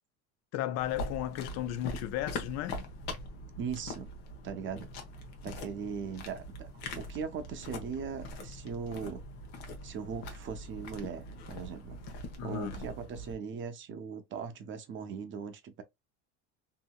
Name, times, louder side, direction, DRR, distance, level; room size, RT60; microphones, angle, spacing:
voice 1, 0.5-2.9 12.4-12.8, left 12 dB, 55° left, 0.5 m, -35 dB
sound 1, 0.8-13.3, left 1 dB, 85° left, 1.0 m, -42 dB
voice 2, 3.6-4.1 4.4-4.9 5.4-9.2 9.8-12.0 12.4-15.8, right 6 dB, 40° right, 0.6 m, -39 dB
2.9 x 2.7 x 2.2 m
supercardioid pair, 120°, 31 cm